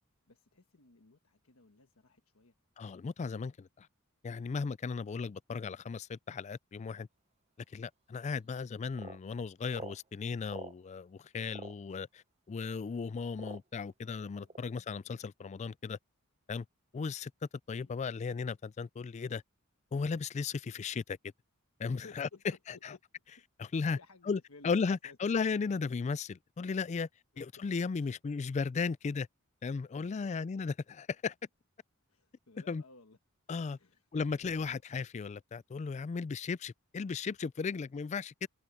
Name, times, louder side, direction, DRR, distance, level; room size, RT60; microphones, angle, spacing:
voice 1, 0.3-2.5 14.4-14.8 17.7-17.9 22.0-23.0 23.4-25.2 27.3-27.6 28.0-28.1 29.9-30.4 32.1-33.2 33.7-34.1, left 3 dB, 75° left, 1.3 m, -58 dB
voice 2, 2.8-3.9 4.2-7.1 7.7-16.0 16.5-16.6 16.9-17.3 17.7-19.4 19.9-21.2 21.8-22.3 23.6-24.0 24.3-27.1 27.4-29.3 29.6-31.3 32.7-32.8 33.5-33.8 34.1-38.5, left 5 dB, 30° left, 0.3 m, -36 dB
sound 1, 8.2-8.3 8.9-9.2 9.7-10.0 10.5-10.8 11.5-11.7 12.6-12.7 13.3-13.8 14.4-14.6, right 4 dB, 30° right, 0.6 m, -45 dB
head